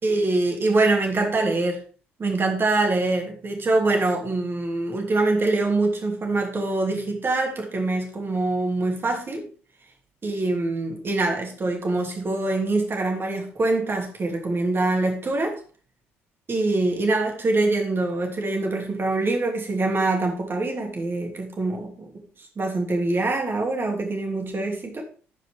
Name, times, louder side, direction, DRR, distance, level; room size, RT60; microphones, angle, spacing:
voice 1, 0.0-1.8 2.2-9.5 10.2-15.6 16.5-22.1 22.6-25.0, right 2 dB, 35° right, 2.7 m, -24 dB
15.0 x 5.2 x 3.4 m
figure-of-eight pair, 50°, 7 cm